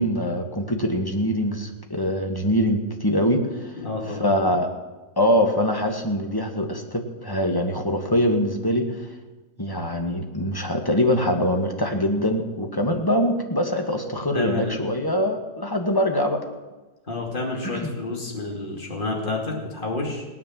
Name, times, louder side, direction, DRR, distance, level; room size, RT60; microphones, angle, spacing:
voice 1, 0.0-3.7 4.2-4.7 5.2-9.0 9.6-16.4 17.6-17.9, equal, 15° left, 3 dB, 1.6 m, -23 dB
voice 2, 3.7-4.4 14.3-14.8 17.1-20.3, left 2 dB, 30° left, 0 dB, 2.8 m, -29 dB
18.5 x 9.6 x 7.5 m, 1.2 s
omnidirectional pair, 1.7 m